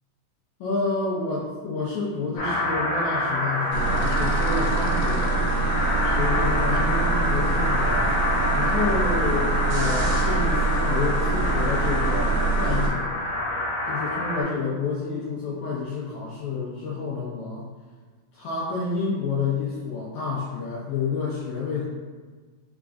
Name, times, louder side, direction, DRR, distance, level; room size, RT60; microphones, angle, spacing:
voice 1, 0.6-5.5 6.0-8.1 8.5-13.1 13.9-17.6 18.3-21.8, left 4 dB, 80° left, -7 dB, 1.6 m, -29 dB
sound 1, 2.4-14.4, left 1 dB, 55° left, 1.5 m, -26 dB
sound 2, 3.7-12.9, right 4 dB, 75° right, 2.2 m, -25 dB
4.9 x 3.6 x 2.4 m, 1.4 s
omnidirectional pair, 4.0 m